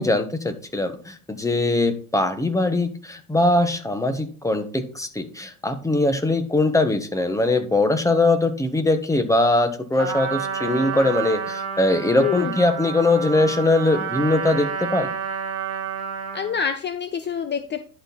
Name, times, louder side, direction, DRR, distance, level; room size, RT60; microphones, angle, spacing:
voice 1, 0.0-15.1, left 2 dB, 5° left, 8 dB, 1.4 m, -21 dB
Trumpet, 10.0-16.6, right 7 dB, 35° right, 2.6 m, -30 dB
voice 2, 12.2-12.5 16.3-17.8, left 7 dB, 25° left, 9 dB, 0.7 m, -26 dB
11.0 x 4.5 x 4.2 m, 0.41 s
hypercardioid pair, 95°, 44 cm